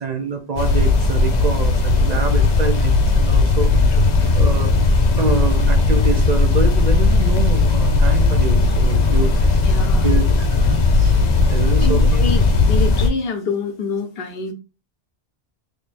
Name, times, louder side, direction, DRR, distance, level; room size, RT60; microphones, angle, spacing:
voice 1, 0.0-4.1 4.3-4.8 5.1-9.7 10.0-12.2, right 4 dB, 50° right, 0.6 m, -26 dB
sound 1, 0.6-13.1, left 3 dB, 50° left, 0.7 m, -16 dB
voice 2, 9.6-10.1 11.8-14.5, left 4 dB, 75° left, 1.0 m, -26 dB
3.7 x 3.4 x 2.5 m
omnidirectional pair, 1.0 m